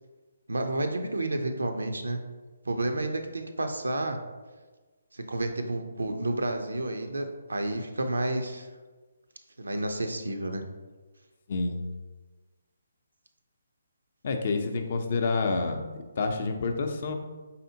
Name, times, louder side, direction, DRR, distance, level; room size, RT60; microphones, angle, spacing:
voice 1, 0.5-2.2 2.6-4.2 5.1-8.7 9.6-10.6, right 2 dB, 90° right, 5 dB, 0.5 m, -30 dB
voice 2, 11.5-11.8 14.2-15.8 16.2-17.1, left 3 dB, 50° left, 5 dB, 0.5 m, -28 dB
4.1 x 3.6 x 2.7 m, 1.3 s
hypercardioid pair, 150°, 0 cm